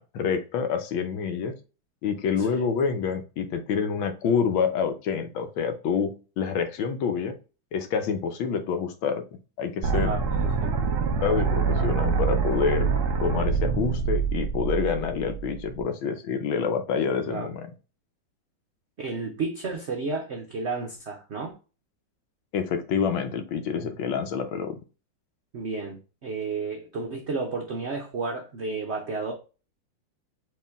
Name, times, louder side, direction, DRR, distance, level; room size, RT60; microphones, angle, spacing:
voice 1, 0.0-1.5 2.0-7.3 7.7-9.2 9.6-10.1 11.2-12.9 13.2-17.7 22.5-24.7, left 6 dB, 80° left, 1.5 m, -27 dB
sound 1, 9.8-15.8, right 5 dB, 50° right, 1.0 m, -25 dB
voice 2, 9.9-10.7 17.3-17.5 19.0-21.6 25.5-29.3, right 4 dB, 70° right, 0.6 m, -32 dB
4.7 x 3.1 x 3.5 m
omnidirectional pair, 2.2 m